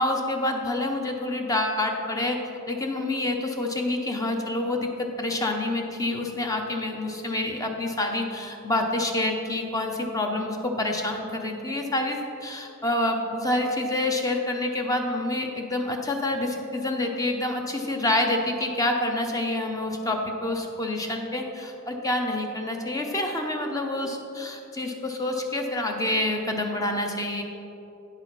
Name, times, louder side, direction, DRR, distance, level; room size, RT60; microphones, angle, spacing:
voice 1, 0.0-2.4 2.7-27.4, left 1 dB, 15° left, 3 dB, 0.6 m, -27 dB
9.0 x 6.2 x 4.0 m, 3.0 s
head